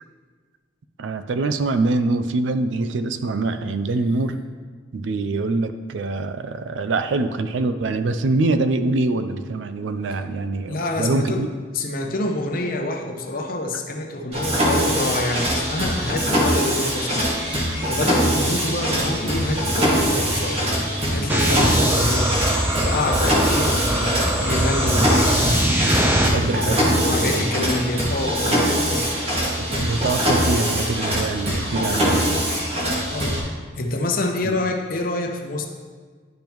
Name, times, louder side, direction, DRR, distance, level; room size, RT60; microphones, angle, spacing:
voice 1, 1.0-4.4 4.9-11.5 26.3-27.4 29.6-32.4 34.4-34.6, right 3 dB, 75° right, 10 dB, 0.4 m, -24 dB
voice 2, 10.7-11.4 11.7-17.3 17.5-20.8 21.1-22.4 22.8-29.1 33.1-33.4 33.8-35.7, left 1 dB, 45° left, 3 dB, 0.7 m, -27 dB
Mechanisms, 14.3-33.4, equal, 30° right, 1.5 m, -22 dB
sound 1, 21.3-26.3, right 1 dB, 10° right, 0.6 m, -22 dB
10.5 x 5.2 x 3.0 m, 1.5 s
head